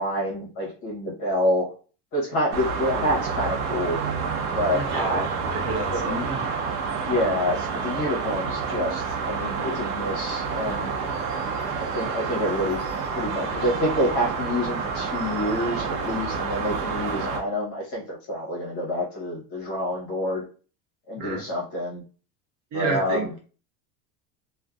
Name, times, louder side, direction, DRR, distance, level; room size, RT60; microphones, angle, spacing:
voice 1, 0.0-1.7 2.1-4.0 4.5-5.4 5.9-6.3 7.0-10.9 11.8-12.8 13.1-20.4 21.1-22.0 22.7-23.3, equal, 40° left, -3 dB, 0.9 m, -27 dB
sound 1, 2.5-17.4, right 5 dB, 80° right, 0.7 m, -29 dB
voice 2, 4.7-6.4 21.2-21.4 22.7-23.3, right 3 dB, 40° right, 1 dB, 0.8 m, -30 dB
2.5 x 2.1 x 2.2 m, 0.38 s
cardioid pair, 160°, 36 cm